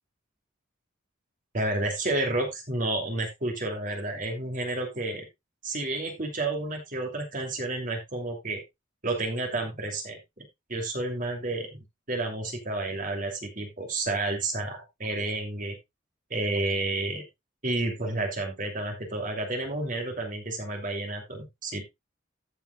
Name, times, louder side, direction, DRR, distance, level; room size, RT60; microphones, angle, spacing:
voice 1, 1.5-5.3 5.6-8.6 9.0-11.8 12.1-15.7 16.3-17.2 17.6-21.8, right 2 dB, 40° right, 3 dB, 2.7 m, -31 dB
15.5 x 7.3 x 2.3 m, 0.20 s
head